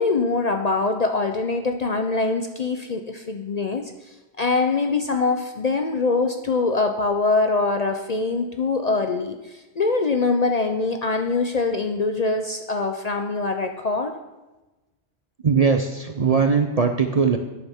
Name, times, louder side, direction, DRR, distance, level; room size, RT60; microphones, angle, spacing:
voice 1, 0.0-3.9 4.4-14.1, left 3 dB, 45° left, 5 dB, 0.6 m, -23 dB
voice 2, 15.4-17.4, right 5 dB, 40° right, 5 dB, 0.6 m, -20 dB
11.0 x 9.3 x 3.6 m, 1.1 s
omnidirectional pair, 1.2 m